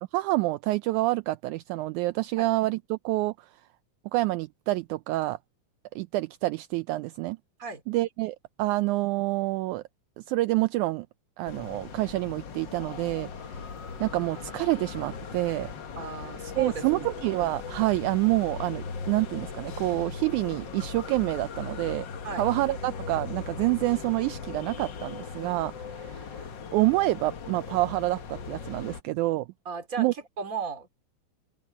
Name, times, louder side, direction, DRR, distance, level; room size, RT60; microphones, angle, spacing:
voice 1, 0.1-3.3 4.1-5.4 5.9-7.4 7.9-9.8 10.2-11.1 11.4-13.7 14.0-15.7 16.6-22.1 22.4-26.4 26.7-29.5 30.0-30.1, right 19 dB, 80° right, 1.9 m, -27 dB
sound 1, 11.4-29.0, left 5 dB, 50° left, 1.5 m, -39 dB
voice 2, 16.0-17.1 22.2-22.5 29.6-30.9, right 5 dB, 25° right, 2.8 m, -36 dB
open air
omnidirectional pair, 3.6 m